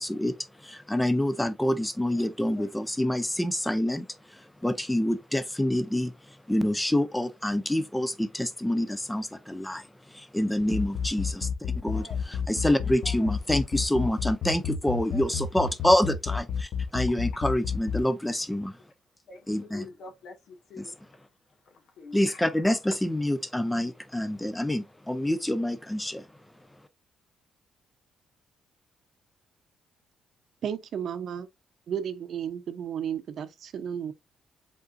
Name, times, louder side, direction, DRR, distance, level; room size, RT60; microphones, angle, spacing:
voice 1, 0.0-11.5 11.8-18.8 19.5-19.8 20.8-20.9 22.1-26.3, left 1 dB, 5° left, 0.5 m, -27 dB
sound 1, 10.6-18.0, left 6 dB, 55° left, 1.0 m, -30 dB
voice 2, 11.6-12.5 12.8-13.3 15.1-15.3 19.3-21.0 21.7-22.8, left 4 dB, 70° left, 1.7 m, -47 dB
voice 3, 30.6-31.5 31.9-34.1, right 8 dB, 65° right, 0.7 m, -33 dB
5.2 x 3.8 x 2.5 m
cardioid pair, 90°, 0 cm